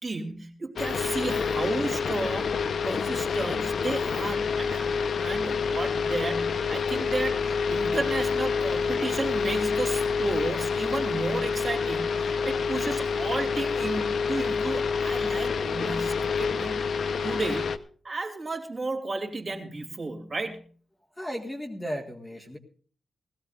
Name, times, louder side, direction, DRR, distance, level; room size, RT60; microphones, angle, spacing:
voice 1, 0.0-2.5 2.8-16.9 17.2-17.7 18.0-20.6, right 3 dB, 30° right, 4 dB, 2.9 m, -33 dB
sound 1, 0.8-17.8, left 5 dB, 60° left, 0.9 m, -27 dB
voice 2, 21.2-22.6, equal, 10° left, 0 dB, 1.7 m, -35 dB
20.5 x 15.5 x 2.6 m, 0.43 s
wide cardioid pair, 165°, 0 cm